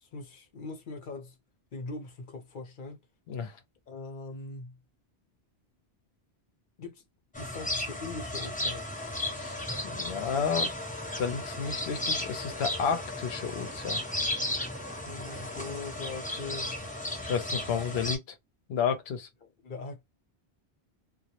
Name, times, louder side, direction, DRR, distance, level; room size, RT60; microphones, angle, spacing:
voice 1, 0.0-1.4 1.7-3.0 3.9-4.8 6.8-7.0 7.4-8.9 15.0-16.7 19.4-20.0, left 3 dB, 55° left, 0.9 m, -41 dB
sound 1, 7.3-18.2, left 1 dB, 10° left, 0.5 m, -34 dB
voice 2, 9.9-10.7 11.2-14.0 17.2-18.2 18.7-19.3, left 6 dB, 75° left, 0.9 m, -31 dB
2.3 x 2.0 x 2.8 m
omnidirectional pair, 1.1 m